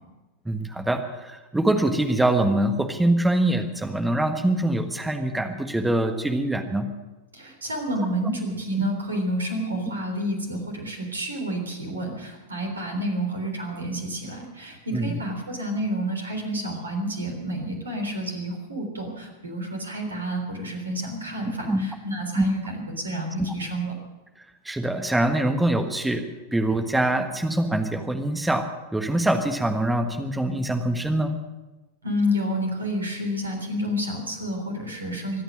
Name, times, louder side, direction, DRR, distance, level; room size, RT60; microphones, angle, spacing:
voice 1, 0.4-6.9 14.9-15.2 21.7-21.8 22.4-22.5 24.6-26.2 26.5-31.3, right 1 dB, 5° right, 6 dB, 1.5 m, -24 dB
voice 2, 7.3-23.9 32.0-35.4, equal, 75° right, 4 dB, 3.6 m, -29 dB
24.0 x 9.0 x 6.3 m, 1.1 s
figure-of-eight pair, 90°, 0 cm